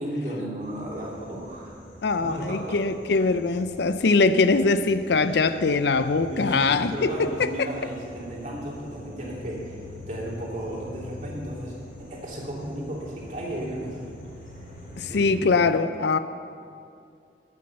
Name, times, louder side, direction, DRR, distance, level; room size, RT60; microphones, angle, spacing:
voice 1, 0.0-1.7 2.2-2.8 6.3-9.8 10.1-14.0 15.1-15.7, right 1 dB, 40° right, 2.6 m, -34 dB
sound 1, 0.6-15.3, left 1 dB, 45° left, 3.2 m, -45 dB
voice 2, 2.0-7.7 15.0-16.2, left 3 dB, 65° left, 0.5 m, -22 dB
12.0 x 8.6 x 6.8 m
head